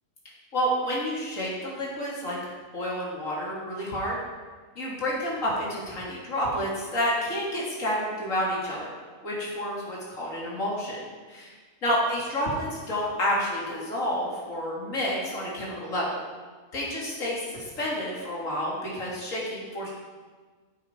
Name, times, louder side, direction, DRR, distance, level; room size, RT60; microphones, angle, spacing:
voice 1, 0.5-2.4 2.7-4.2 4.7-8.9 9.2-11.0 11.3-11.5 11.8-16.2 16.7-19.9, equal, 60° left, -5 dB, 3.2 m, -29 dB
16.0 x 8.6 x 4.6 m, 1.4 s
omnidirectional pair, 1.5 m